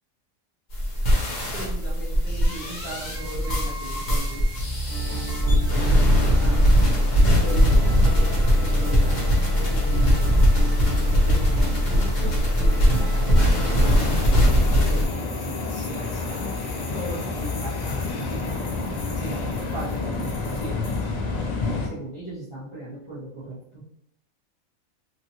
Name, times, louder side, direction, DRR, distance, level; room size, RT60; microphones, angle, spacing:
sound 1, 0.7-15.0, equal, 40° left, 0.8 m, -20 dB
voice 1, 1.5-4.5 6.1-6.7 7.2-9.2 9.7-10.2 11.1-11.6 11.8-16.6 16.9-18.8 19.1-20.9 21.6-23.8, right 1 dB, 20° left, -13 dB, 1.3 m, -38 dB
sound 2, 4.9-13.9, right 2 dB, 75° right, 1.3 m, -34 dB
sound 3, 13.7-21.9, left 3 dB, 85° left, 0.3 m, -29 dB
3.0 x 2.8 x 2.8 m, 0.73 s
omnidirectional pair, 1.4 m